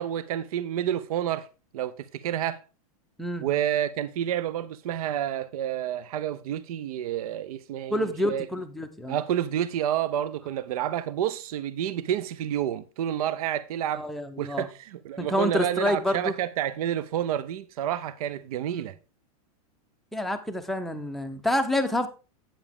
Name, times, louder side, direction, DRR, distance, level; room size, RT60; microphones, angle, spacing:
voice 1, 0.0-1.5 1.7-2.6 3.4-8.5 9.1-14.0 14.4-18.9, right 10 dB, 70° right, 0.5 m, -29 dB
voice 2, 7.9-9.2 13.9-14.7 15.2-16.3 18.7-18.9 20.1-22.1, left 1 dB, ahead, 0.5 m, -28 dB
8.7 x 7.1 x 3.5 m
supercardioid pair, 160°, 19 cm